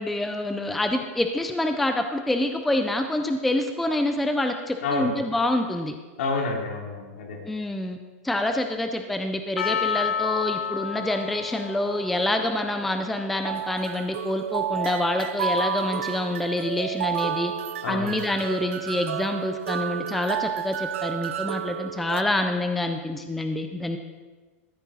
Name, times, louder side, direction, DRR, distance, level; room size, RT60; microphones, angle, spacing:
voice 1, 0.0-5.9 7.5-8.0 8.2-17.5 17.9-24.0, left 1 dB, ahead, 6 dB, 0.3 m, -27 dB
voice 2, 4.8-5.1 6.2-7.4 17.8-18.2, left 3 dB, 65° left, 0 dB, 2.7 m, -28 dB
Percussion, 9.6-13.9 14.6-14.7, left 7 dB, 80° left, 0.8 m, -31 dB
sound 1, 13.4-22.2, right 8 dB, 65° right, 0.5 m, -31 dB
13.5 x 8.4 x 4.2 m, 1.3 s
supercardioid pair, 170°, 8 cm